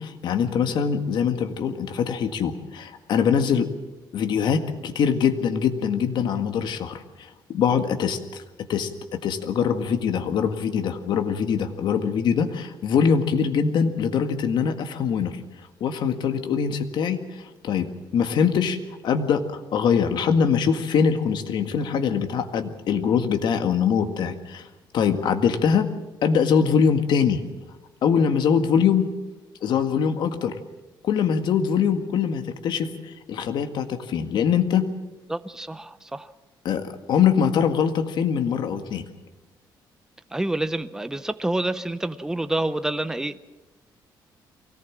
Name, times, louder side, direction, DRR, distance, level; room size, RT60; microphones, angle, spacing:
voice 1, 0.0-3.7 4.1-15.4 15.8-18.8 19.0-24.7 24.9-25.9 26.2-27.4 28.0-29.1 29.6-30.6 31.0-34.9 36.7-39.0, left 7 dB, 65° left, 7 dB, 1.8 m, -23 dB
voice 2, 35.3-36.3 40.3-43.5, right 2 dB, 5° right, 12 dB, 0.7 m, -28 dB
23.5 x 18.0 x 7.5 m, 1.1 s
cardioid pair, 140°, 8 cm